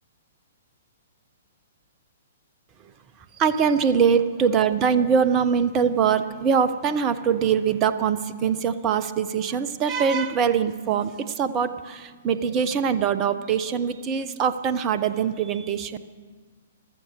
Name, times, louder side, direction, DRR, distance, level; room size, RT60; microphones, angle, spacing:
voice 1, 3.4-16.0, right 7 dB, 25° right, 12 dB, 0.9 m, -23 dB
14.0 x 13.5 x 7.0 m, 1.5 s
figure-of-eight pair, 115°, 0 cm